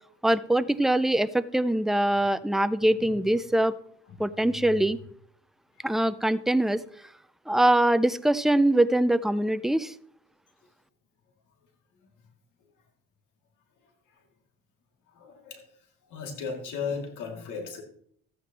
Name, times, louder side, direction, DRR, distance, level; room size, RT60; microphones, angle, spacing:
voice 1, 0.2-3.7 4.2-5.0 5.8-6.8 7.5-9.9, right 1 dB, ahead, 13 dB, 0.4 m, -23 dB
voice 2, 4.1-4.8 5.8-5.9 14.1-14.2 15.1-15.8 16.1-17.8, left 5 dB, 85° left, 3 dB, 2.5 m, -37 dB
14.0 x 9.3 x 3.0 m, 0.62 s
cardioid pair, 90°, 30 cm